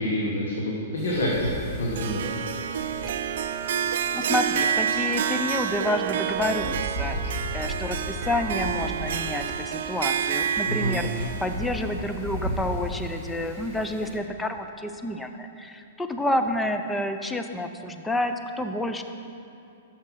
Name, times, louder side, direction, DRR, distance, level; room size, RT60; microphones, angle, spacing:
voice 1, 0.0-2.3 10.7-11.0, equal, 80° left, -4 dB, 1.2 m, -27 dB
Wind, 1.0-14.2, equal, 25° left, 1.5 m, -37 dB
Harp, 1.9-13.2, right 8 dB, 70° right, 0.3 m, -29 dB
voice 2, 3.2-3.6 4.1-19.0, left 1 dB, 5° left, 6 dB, 0.4 m, -29 dB
6.4 x 6.0 x 5.7 m, 2.6 s
hypercardioid pair, 135°, 0 cm